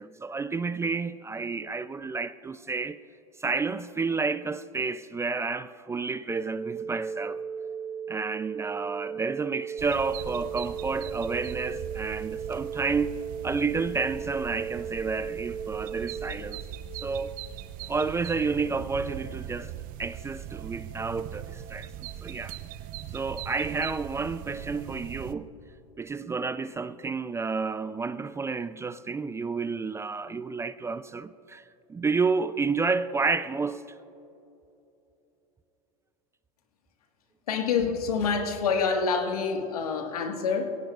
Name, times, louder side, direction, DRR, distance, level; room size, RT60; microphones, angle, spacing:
voice 1, 0.0-3.0 3.4-7.4 8.1-13.2 13.4-16.6 17.0-17.4 17.9-19.7 20.0-21.9 22.2-22.6 23.1-25.5 26.0-31.6 31.9-33.8, right 4 dB, 15° right, 0.4 m, -30 dB
sound 1, 6.3-16.3, right 7 dB, 5° left, 1.9 m, -36 dB
sound 2, 9.8-25.3, right 12 dB, 50° right, 0.7 m, -40 dB
voice 2, 37.5-40.8, left 5 dB, 90° left, 1.6 m, -27 dB
21.5 x 17.5 x 2.4 m
hypercardioid pair, 95°, 18 cm